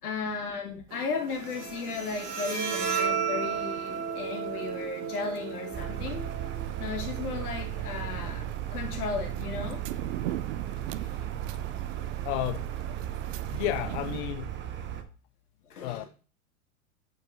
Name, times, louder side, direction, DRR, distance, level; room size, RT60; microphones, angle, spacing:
voice 1, 0.0-6.2 6.8-8.5 8.7-9.8 11.0-11.2 15.7-16.1, left 4 dB, 85° left, 2.1 m, -35 dB
sound 1, 0.9-14.2, right 14 dB, 60° right, 0.5 m, -43 dB
Bowed string instrument, 1.3-8.3, right 7 dB, 45° right, 2.2 m, -34 dB
sound 2, 5.7-15.0, right 11 dB, 25° right, 0.8 m, -35 dB
voice 2, 12.2-12.7 13.5-14.5 15.8-16.0, left 15 dB, 50° left, 0.5 m, -32 dB
8.9 x 4.7 x 2.7 m
hypercardioid pair, 110°, 44 cm